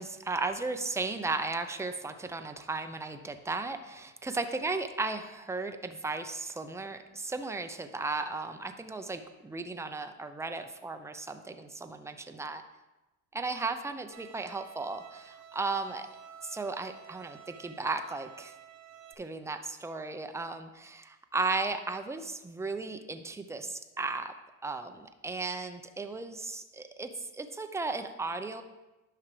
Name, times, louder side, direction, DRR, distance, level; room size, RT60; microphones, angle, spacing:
voice 1, 0.0-12.6 13.3-16.1 16.4-18.5 19.2-24.3 24.6-28.6, right 3 dB, 5° right, 7 dB, 0.7 m, -35 dB
Bowed string instrument, 14.1-19.1, right 9 dB, 40° right, 1.1 m, -52 dB
10.5 x 5.8 x 3.3 m, 1.0 s
supercardioid pair, 75°, 42 cm